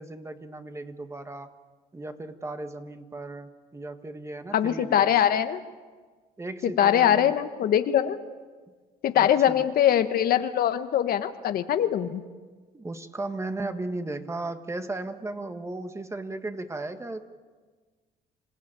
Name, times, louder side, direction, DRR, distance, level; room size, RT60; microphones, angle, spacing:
voice 1, 0.0-1.5 1.9-5.1 6.4-7.3 9.1-9.5 12.7-17.3, right 2 dB, 15° right, 8 dB, 1.5 m, -36 dB
voice 2, 4.5-5.6 6.6-8.2 9.0-12.2, left 10 dB, 60° left, 10 dB, 1.2 m, -22 dB
26.5 x 17.0 x 8.9 m, 1.4 s
cardioid pair, 110°, 17 cm